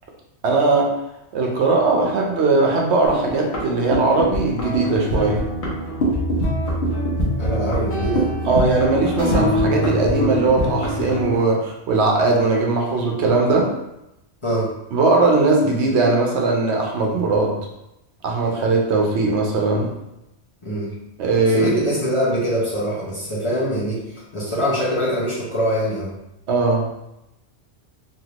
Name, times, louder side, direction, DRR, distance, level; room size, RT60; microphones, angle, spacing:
voice 1, 0.4-1.0 1.3-5.5 8.5-13.7 14.9-17.6 18.2-19.9 21.2-21.9 26.5-26.9, right 3 dB, 70° right, 0 dB, 0.9 m, -19 dB
sound 1, 3.0-11.4, equal, 70° left, 1.1 m, -23 dB
voice 2, 7.4-8.3 14.4-14.7 20.6-20.9 21.5-24.0 24.3-26.1, equal, 30° left, -8 dB, 0.8 m, -23 dB
3.2 x 2.6 x 2.9 m, 0.87 s
omnidirectional pair, 1.2 m